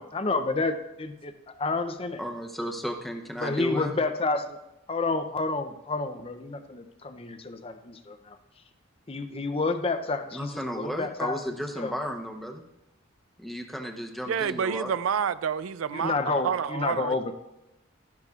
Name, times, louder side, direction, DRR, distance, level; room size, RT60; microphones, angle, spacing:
voice 1, 0.0-1.3 1.6-2.2 3.4-4.6 4.9-8.4 9.1-11.4 11.8-11.9 15.9-17.3, left 3 dB, 30° left, 0.5 m, -29 dB
voice 2, 2.2-4.0 10.3-12.6 13.4-14.9, equal, ahead, 0.8 m, -34 dB
voice 3, 14.3-17.2, right 7 dB, 85° right, 0.4 m, -29 dB
13.0 x 10.5 x 2.4 m
head